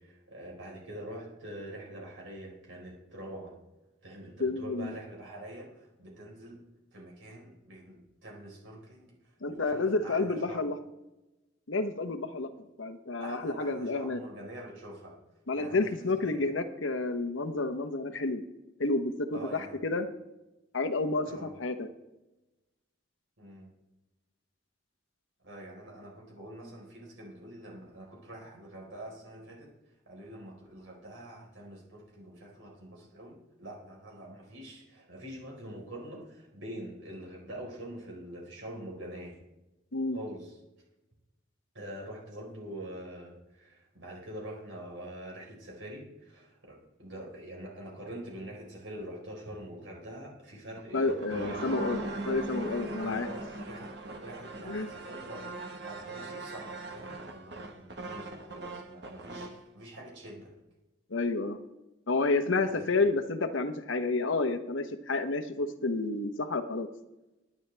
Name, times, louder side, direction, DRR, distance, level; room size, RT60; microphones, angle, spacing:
voice 1, 0.0-3.6 4.0-6.6 6.9-9.1 9.4-10.6 13.2-15.2 15.6-16.4 19.3-19.8 21.2-21.5 23.4-23.7 25.4-29.7 30.1-39.4 40.1-40.5 41.7-51.7 53.0-53.9 54.2-55.5 55.8-60.5 62.6-63.0, right 1 dB, 90° right, -2 dB, 4.3 m, -45 dB
voice 2, 4.4-4.9 9.4-10.8 11.7-12.5 12.8-14.2 15.5-18.4 18.8-20.1 20.7-21.9 39.9-40.2 50.9-53.3 54.7-54.9 61.1-61.6 62.1-66.9, left 3 dB, 90° left, 9 dB, 1.0 m, -30 dB
sound 1, 50.8-59.6, right 2 dB, 60° right, 1.3 m, -40 dB
23.0 x 9.6 x 3.4 m, 1.0 s
head